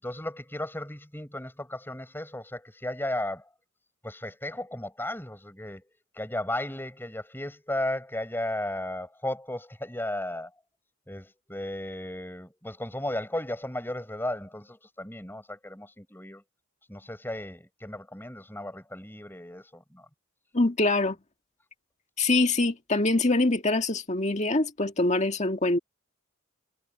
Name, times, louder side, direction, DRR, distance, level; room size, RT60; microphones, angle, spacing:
voice 1, 0.0-3.4 4.0-5.8 6.2-10.5 11.1-16.4 16.9-20.1, left 1 dB, 10° left, 5.3 m, -35 dB
voice 2, 20.5-21.2 22.2-25.8, left 2 dB, 35° left, 1.8 m, -24 dB
head